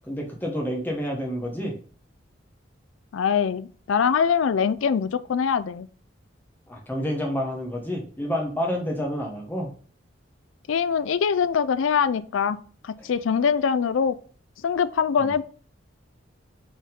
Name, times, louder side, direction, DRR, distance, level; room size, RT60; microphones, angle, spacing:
voice 1, 0.1-1.8 6.7-9.7 13.0-13.1 15.2-15.3, equal, 10° left, 1.1 m, -29 dB
voice 2, 3.1-5.9 10.7-12.6 12.8-14.2 14.6-15.4, left 6 dB, 85° left, 0.4 m, -23 dB
5.3 x 3.7 x 5.2 m
head